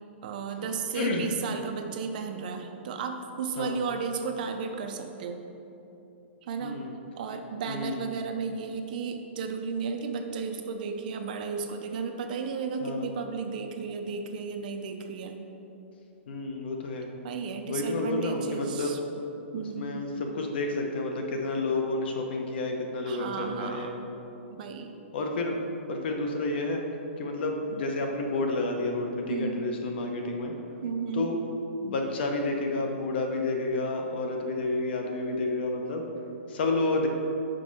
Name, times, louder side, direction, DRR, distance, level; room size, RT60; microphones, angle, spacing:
voice 1, 0.2-5.4 6.4-6.8 7.2-15.4 17.2-19.0 19.5-20.1 23.1-23.9 24.5-24.9 29.3-29.7 30.8-31.3, right 5 dB, 40° right, 5 dB, 0.5 m, -34 dB
voice 2, 0.9-1.3 3.6-3.8 6.6-6.9 7.7-8.1 12.8-13.1 16.3-17.1 17.7-18.9 19.5-24.0 25.1-25.6 25.9-26.8 27.2-30.5 31.1-31.4 31.8-36.0 36.5-37.1, left 2 dB, 55° left, 3 dB, 0.9 m, -30 dB
5.3 x 5.1 x 5.5 m, 3.0 s
hypercardioid pair, 165°, 7 cm